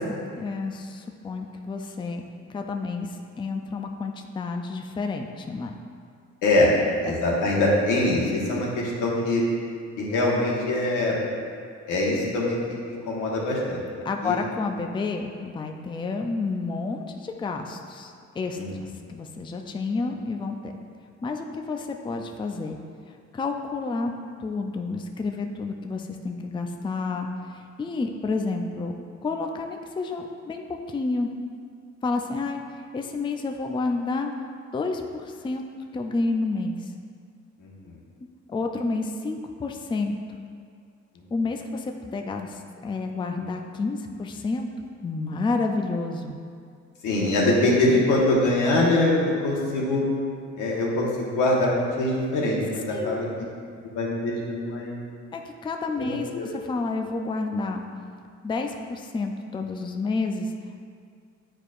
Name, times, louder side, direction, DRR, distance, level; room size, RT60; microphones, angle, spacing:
voice 1, 0.4-2.2 2.5-5.7 7.1-7.2 14.0-20.7 21.2-22.8 23.3-24.1 24.4-28.9 29.2-30.6 30.9-31.3 32.0-34.3 34.7-35.6 35.9-36.8 38.5-40.1 41.3-44.7 45.0-46.4 52.9-53.2 55.3-57.8 58.4-60.5, left 3 dB, 15° left, 3 dB, 0.4 m, -30 dB
voice 2, 7.0-9.4 10.0-11.2 11.9-13.8 14.2-14.3 18.6-18.7 37.6-37.7 47.0-50.0 50.6-53.3 53.9-54.9 56.0-56.5, left 2 dB, 85° left, -4 dB, 1.3 m, -23 dB
8.8 x 4.7 x 2.5 m, 2.2 s
cardioid pair, 90°, 30 cm